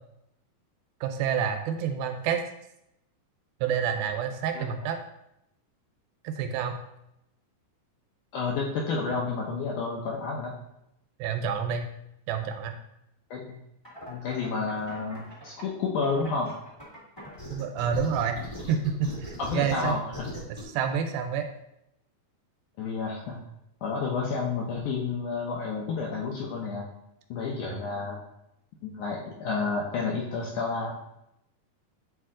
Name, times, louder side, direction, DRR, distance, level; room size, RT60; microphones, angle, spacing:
voice 1, 1.0-2.4 3.6-5.0 6.2-6.8 11.2-11.9 12.3-12.8 17.5-18.4 18.7-20.0 20.7-21.5, right 7 dB, 85° right, 6 dB, 2.3 m, -28 dB
voice 2, 8.3-10.6 13.3-13.6 14.1-16.5 19.4-20.3 22.8-23.4 23.8-26.9 27.3-28.2 28.8-30.9, left 4 dB, 75° left, -2 dB, 1.8 m, -30 dB
sound 1, 13.8-15.6 16.0-20.6, equal, 15° left, 0.8 m, -41 dB
8.7 x 3.0 x 3.6 m, 0.81 s
omnidirectional pair, 4.4 m